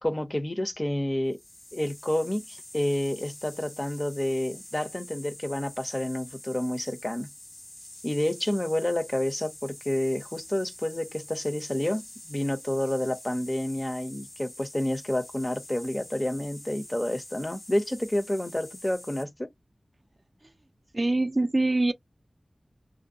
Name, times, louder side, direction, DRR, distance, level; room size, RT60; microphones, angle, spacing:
voice 1, 0.0-1.4 1.7-7.3 8.0-19.5, left 1 dB, 25° left, 0.6 m, -29 dB
sound 1, 1.3-19.2, left 1 dB, 65° left, 1.4 m, -46 dB
voice 2, 20.9-21.9, right 2 dB, 40° right, 0.3 m, -24 dB
2.6 x 2.2 x 2.6 m
wide cardioid pair, 65°, 0 cm